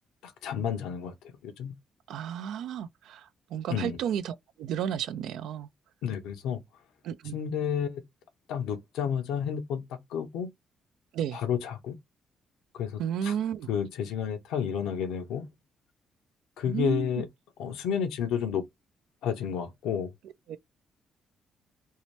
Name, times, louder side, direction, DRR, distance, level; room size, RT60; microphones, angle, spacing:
voice 1, 0.2-1.1 1.4-1.7 3.7-4.0 6.0-6.6 7.3-8.0 8.5-10.5 11.3-11.9 12.7-13.3 13.7-15.5 16.6-17.3 17.6-18.6 19.2-20.1, left 8 dB, 90° left, 0.6 m, -31 dB
voice 2, 2.1-5.7 7.0-7.4 11.1-11.4 13.0-13.7 16.6-17.3 20.2-20.6, right 9 dB, 80° right, 0.4 m, -33 dB
2.7 x 2.1 x 3.2 m
cardioid pair, 90°, 0 cm